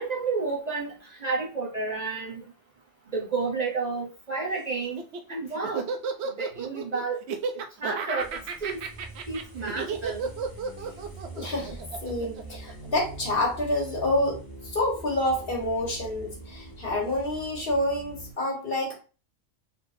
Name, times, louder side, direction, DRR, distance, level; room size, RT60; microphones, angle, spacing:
voice 1, 0.0-2.4 3.1-5.0 5.3-5.9 6.4-7.2 7.5-8.8 9.3-10.3, right 4 dB, 40° right, -3 dB, 0.8 m, -31 dB
Laughter, 4.8-13.2, right 5 dB, 70° right, 0.8 m, -33 dB
sound 1, 8.2-18.3, right 2 dB, 20° left, 1.2 m, -43 dB
voice 2, 11.3-19.0, left 1 dB, 50° left, -1 dB, 1.5 m, -28 dB
4.3 x 3.3 x 2.6 m, 0.34 s
omnidirectional pair, 1.2 m